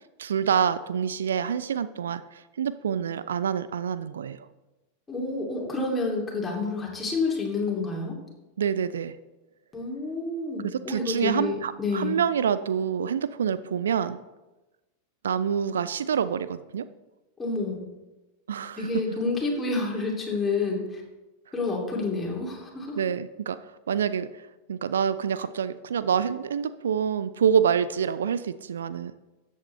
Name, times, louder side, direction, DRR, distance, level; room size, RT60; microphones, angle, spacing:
voice 1, 0.2-4.5 8.6-9.2 10.6-14.2 15.2-16.9 18.5-18.9 23.0-29.1, right 7 dB, 65° right, 14 dB, 0.4 m, -27 dB
voice 2, 5.1-8.2 9.7-12.2 17.4-17.8 18.8-21.0 21.5-23.0, left 3 dB, 15° left, -2 dB, 2.8 m, -29 dB
13.5 x 8.4 x 3.3 m, 1.1 s
figure-of-eight pair, 90°, 0 cm